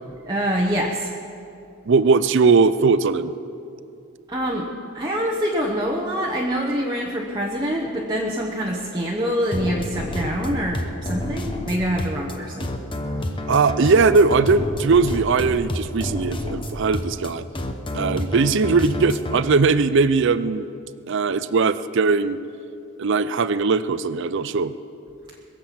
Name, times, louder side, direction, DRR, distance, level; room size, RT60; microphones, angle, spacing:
voice 1, 0.2-1.1 4.3-4.7 4.9-12.7, equal, 20° right, -2 dB, 1.0 m, -25 dB
voice 2, 1.9-3.3 13.5-17.4 17.9-20.7 21.1-22.4 23.0-24.7, right 4 dB, 55° right, 14 dB, 0.5 m, -19 dB
sound 1, 9.5-19.4, left 1 dB, 20° left, 0.8 m, -29 dB
21.5 x 7.6 x 7.6 m, 2.6 s
head